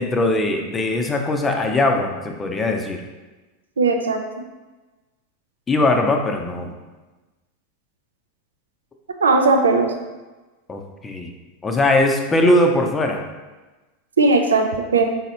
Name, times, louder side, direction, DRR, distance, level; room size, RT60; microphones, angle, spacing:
voice 1, 0.0-3.0 5.7-6.7 10.7-11.3 11.6-13.2, left 1 dB, 20° left, 3 dB, 0.6 m, -20 dB
voice 2, 3.8-4.2 9.2-9.9 14.2-15.0, right 3 dB, 85° right, 5 dB, 0.5 m, -17 dB
4.1 x 3.9 x 2.7 m, 1.2 s
hypercardioid pair, 95°, 0 cm